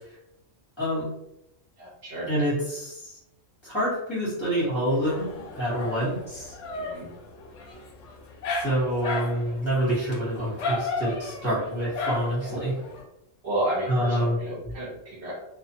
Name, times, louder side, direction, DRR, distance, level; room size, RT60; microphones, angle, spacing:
voice 1, 0.8-1.1 2.3-3.1 3.6-5.3 5.5-6.5 8.6-12.7 13.9-14.4, equal, 20° left, -10 dB, 1.2 m, -27 dB
voice 2, 1.8-2.3 6.7-7.1 12.4-12.7 13.4-15.3, right 1 dB, 60° right, -6 dB, 1.2 m, -32 dB
Dog, 4.9-13.0, left 3 dB, 75° left, 0.9 m, -35 dB
2.4 x 2.4 x 2.7 m, 0.84 s
omnidirectional pair, 1.3 m